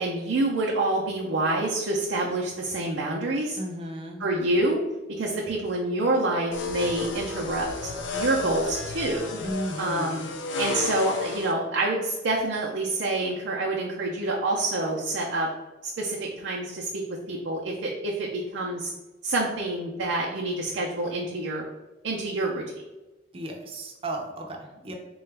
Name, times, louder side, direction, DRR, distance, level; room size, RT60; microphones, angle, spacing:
voice 1, 0.0-3.6 4.2-4.8 5.2-7.7 8.1-9.3 9.8-10.3 10.6-15.5 15.8-17.0 17.3-18.9 19.2-21.6 22.0-22.6, right 2 dB, 85° right, -3 dB, 0.5 m, -27 dB
voice 2, 3.6-4.2 9.4-10.3 23.3-24.9, right 1 dB, 30° right, 1 dB, 0.5 m, -34 dB
sound 1, 6.5-11.5, left 3 dB, 85° left, 0.4 m, -32 dB
3.9 x 2.3 x 3.3 m, 1.1 s
head